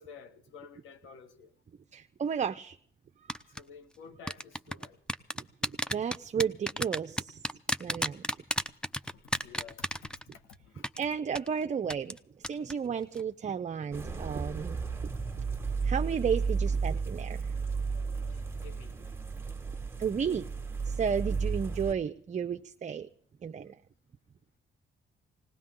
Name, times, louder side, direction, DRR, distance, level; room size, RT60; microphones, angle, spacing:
voice 1, 0.0-1.5 3.6-5.0 9.2-10.9 17.9-18.9, left 6 dB, 85° left, 1.9 m, -52 dB
voice 2, 1.9-2.8 5.3-7.4 7.8-8.2 11.0-12.2 12.4-14.8 15.8-17.5 20.0-20.5 20.8-23.1 23.4-23.8, right 7 dB, 35° right, 0.7 m, -33 dB
sound 1, 3.3-3.6 4.3-10.5 10.8-11.0 11.4-11.5 11.9-12.2 12.4-12.7 13.0-13.2, equal, 5° left, 0.6 m, -31 dB
sound 2, 13.9-21.9, right 5 dB, 10° right, 1.6 m, -33 dB
20.0 x 18.0 x 3.8 m
cardioid pair, 90°, 20 cm